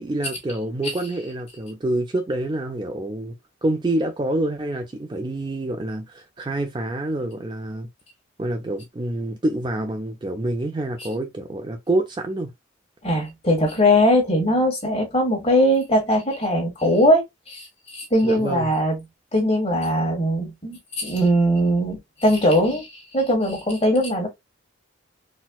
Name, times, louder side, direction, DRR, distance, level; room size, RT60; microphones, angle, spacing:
voice 1, 0.0-3.4 3.6-7.9 8.4-12.5 18.2-18.7, right 1 dB, 20° right, 0.4 m, -27 dB
voice 2, 13.0-19.0 19.3-24.3, equal, 30° left, 1.5 m, -20 dB
4.2 x 2.1 x 2.2 m
head